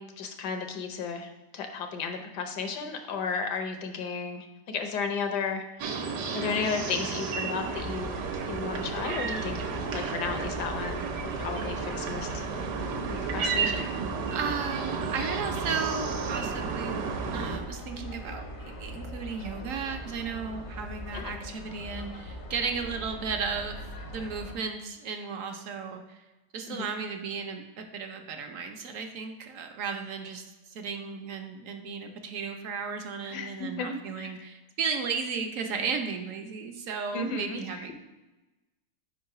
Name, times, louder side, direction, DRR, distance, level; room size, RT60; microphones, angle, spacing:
voice 1, 0.0-12.5 13.1-13.8 21.1-21.4 26.7-26.9 33.3-34.3 37.1-37.9, left 5 dB, 80° left, 5 dB, 1.4 m, -34 dB
sound 1, 5.8-17.6, right 5 dB, 90° right, 1.4 m, -32 dB
sound 2, 7.6-24.6, equal, 50° left, 0.6 m, -41 dB
voice 2, 14.3-17.1 17.3-23.8 24.1-26.2 26.5-37.9, right 5 dB, 65° right, 5 dB, 0.9 m, -35 dB
5.2 x 3.9 x 5.4 m, 1.1 s
omnidirectional pair, 1.8 m